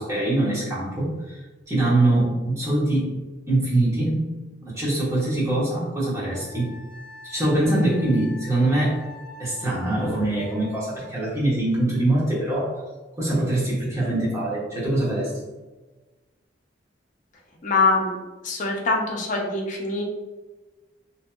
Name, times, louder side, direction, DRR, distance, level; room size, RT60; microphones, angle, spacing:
voice 1, 0.0-1.4 1.7-3.2 3.5-6.7 7.2-9.0 9.4-12.8 13.1-15.3, right 1 dB, 15° right, -8 dB, 1.0 m, -23 dB
Wind instrument woodwind instrument, 6.3-11.2, left 3 dB, ahead, 1.3 m, -44 dB
voice 2, 17.6-18.2 18.4-20.0, left 3 dB, 45° left, 0 dB, 0.6 m, -23 dB
2.7 x 2.7 x 2.2 m, 1.2 s
head